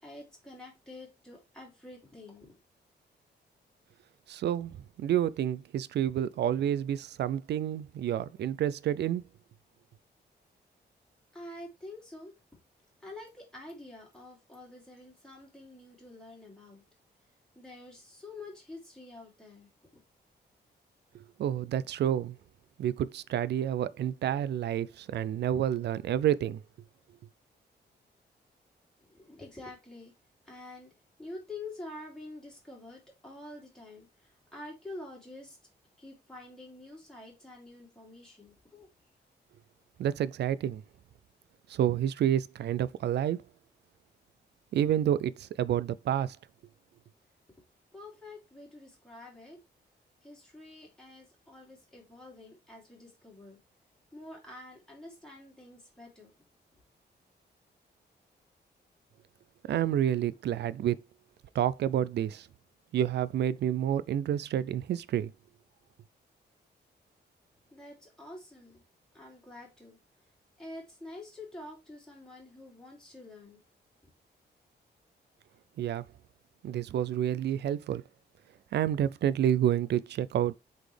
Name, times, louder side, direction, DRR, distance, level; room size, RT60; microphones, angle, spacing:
voice 1, 0.0-2.6 11.3-12.3 13.0-16.8 17.5-20.0 29.0-30.1 30.4-30.9 31.2-35.6 36.0-38.9 47.9-49.6 50.2-53.6 54.1-56.3 67.7-68.8 69.1-70.0 70.6-73.6, left 2 dB, 5° left, 3.0 m, -47 dB
voice 2, 4.3-9.2 21.1-22.4 22.8-26.6 40.0-40.8 41.7-43.4 44.7-46.4 59.7-61.0 61.5-62.5 62.9-65.3 75.8-76.0 76.6-78.0 78.7-80.5, right 10 dB, 75° right, 0.4 m, -29 dB
8.0 x 4.2 x 3.3 m
wide cardioid pair, 160°, 18 cm